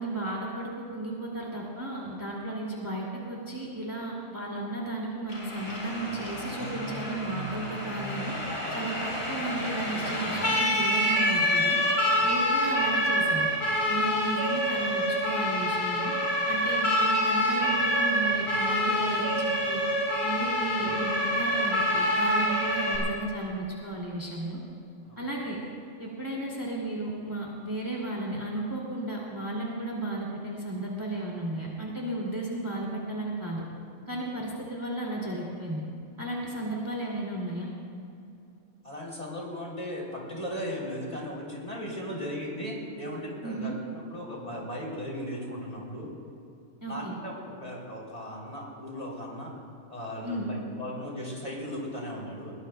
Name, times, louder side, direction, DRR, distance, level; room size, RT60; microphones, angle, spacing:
voice 1, 0.0-8.3 8.7-11.8 12.2-13.5 13.9-16.1 16.5-19.8 20.2-24.6 25.2-25.6 26.0-33.6 34.1-35.8 36.2-37.7 43.4-43.8 46.8-47.1 50.2-50.5, right 2 dB, 15° right, -4 dB, 2.4 m, -34 dB
Siren, 5.3-23.0, equal, 65° left, 4.8 m, -27 dB
voice 2, 38.8-46.1 46.9-49.5 49.9-52.5, equal, 25° left, -3 dB, 3.4 m, -37 dB
22.0 x 20.0 x 2.3 m, 2.6 s
omnidirectional pair, 1.5 m